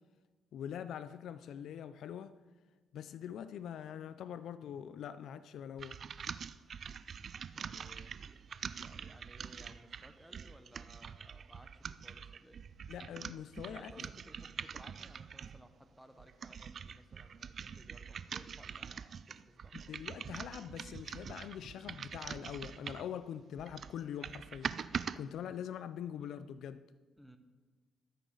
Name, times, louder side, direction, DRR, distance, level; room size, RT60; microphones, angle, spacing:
voice 1, 0.5-2.3 2.9-6.0 12.9-14.1 19.7-24.7 25.2-26.8, left 9 dB, 75° left, 0.4 m, -43 dB
sound 1, 5.8-15.6 16.2-23.2 23.6-25.2, right 7 dB, 50° right, 0.3 m, -44 dB
voice 2, 7.5-8.1 8.8-12.6 13.7-20.0 27.2-27.4, equal, ahead, 1.0 m, -59 dB
14.0 x 8.0 x 3.9 m
cardioid pair, 90°, 0 cm